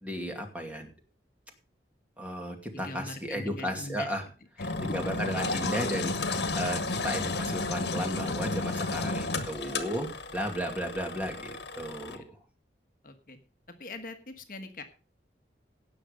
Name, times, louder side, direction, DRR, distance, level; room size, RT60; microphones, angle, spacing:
voice 1, 0.0-0.9 2.2-4.2 4.6-12.4, equal, 10° right, 3 dB, 2.4 m, -34 dB
voice 2, 2.7-4.2 4.6-4.8 7.2-7.5 8.0-8.2 8.9-9.1 9.6-10.0 12.1-12.2 13.0-13.4 13.8-14.8, left 2 dB, 50° left, 7 dB, 1.4 m, -43 dB
Engine, 4.6-12.2, left 3 dB, 75° left, 1.6 m, -32 dB
17.5 x 6.6 x 5.1 m, 0.36 s
head